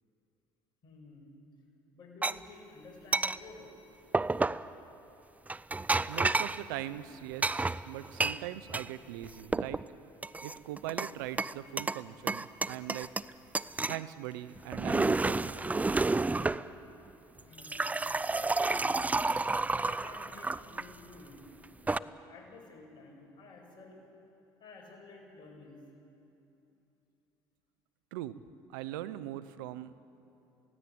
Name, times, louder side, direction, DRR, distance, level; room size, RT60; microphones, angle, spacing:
voice 1, 0.8-1.3 1.9-3.7 17.4-17.9 18.6-19.4 19.7-21.6 22.0-24.0 24.6-25.8, left 3 dB, 50° left, 0 dB, 7.2 m, -52 dB
sound 1, 2.2-2.3 3.1-3.4 4.1-4.7 5.5-6.6 7.4-8.9 9.2-9.8 10.2-11.1 11.4-12.0 12.3-13.3 13.5-14.0 14.6-16.6 17.4-20.9 21.6-22.0, right 3 dB, 15° right, 0.5 m, -30 dB
voice 2, 6.1-9.8 10.4-13.1 13.8-15.5 28.1-28.4 28.7-29.9, right 13 dB, 85° right, 15 dB, 0.7 m, -41 dB
23.5 x 16.5 x 8.6 m, 2.9 s
supercardioid pair, 80°, 10 cm